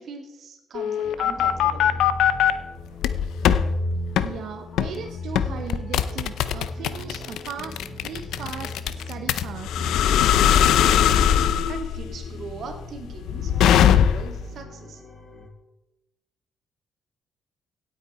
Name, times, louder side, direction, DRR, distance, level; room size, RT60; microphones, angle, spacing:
voice 1, 0.0-2.0 11.7-15.0, right 4 dB, 60° right, 4 dB, 2.4 m, -40 dB
sound 1, 0.7-2.5 3.0-3.6 4.2-4.3 4.8-5.0 5.4-14.4, left 10 dB, 85° left, 0.7 m, -20 dB
sound 2, 1.0-15.5, left 2 dB, 35° left, 5.4 m, -35 dB
voice 2, 4.2-9.8, right 7 dB, 75° right, 5 dB, 1.0 m, -38 dB
17.0 x 8.6 x 4.4 m, 0.97 s
cardioid pair, 90°, 0 cm